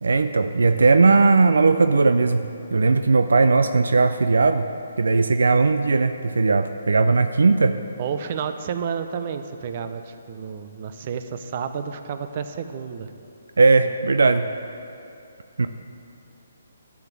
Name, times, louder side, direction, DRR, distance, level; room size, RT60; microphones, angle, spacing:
voice 1, 0.0-4.7 5.0-7.8 13.6-14.5 15.6-15.7, right 3 dB, 75° right, 9 dB, 0.5 m, -18 dB
voice 2, 8.0-13.1, right 7 dB, 40° right, 9 dB, 0.8 m, -31 dB
12.0 x 7.3 x 7.4 m, 2.7 s
figure-of-eight pair, 145°, 0 cm